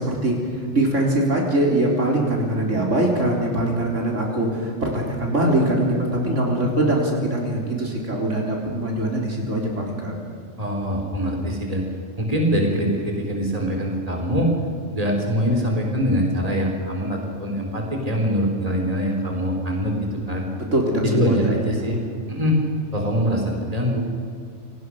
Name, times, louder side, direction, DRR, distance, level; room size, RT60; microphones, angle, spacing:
voice 1, 0.0-10.1 20.6-22.1, right 1 dB, 70° right, -1 dB, 4.3 m, -22 dB
voice 2, 10.6-11.8 12.2-14.5 14.9-20.5 21.0-22.0 22.3-22.6 22.9-24.0, equal, 30° right, 1 dB, 4.0 m, -23 dB
28.5 x 19.0 x 6.5 m, 2.4 s
omnidirectional pair, 1.3 m